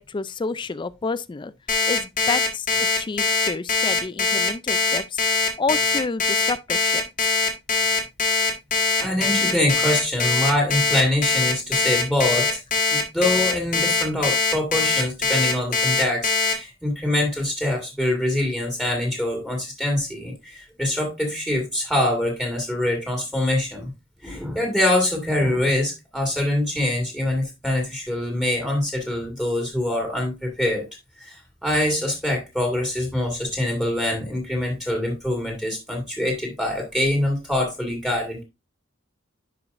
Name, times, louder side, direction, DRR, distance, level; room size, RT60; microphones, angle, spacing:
voice 1, 0.0-1.5 1.9-2.7 3.0-5.2 5.6-7.3, left 4 dB, 25° left, 0.4 m, -29 dB
Alarm, 1.7-16.5, left 4 dB, 40° left, 1.7 m, -21 dB
voice 2, 9.0-12.6 12.9-23.9 24.2-30.9 31.2-38.4, left 1 dB, ahead, 1.9 m, -24 dB
10.5 x 5.0 x 2.6 m
head